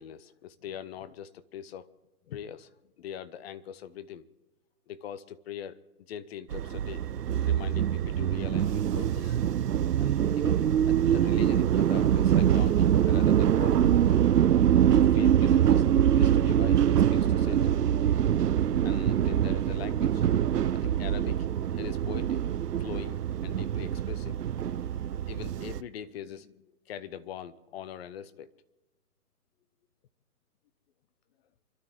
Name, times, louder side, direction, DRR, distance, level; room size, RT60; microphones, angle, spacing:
voice 1, 0.0-1.9 2.3-2.7 3.0-4.3 4.9-5.8 6.1-7.1 7.4-9.5 9.8-14.2 14.9-15.9 16.2-17.8 18.8-21.5 21.7-22.4 22.8-24.4 25.3-28.5, left 9 dB, 40° left, 0.9 m, -42 dB
sound 1, 6.5-25.8, right 10 dB, 85° right, 0.7 m, -24 dB
28.5 x 12.5 x 3.7 m
hypercardioid pair, 130°, 47 cm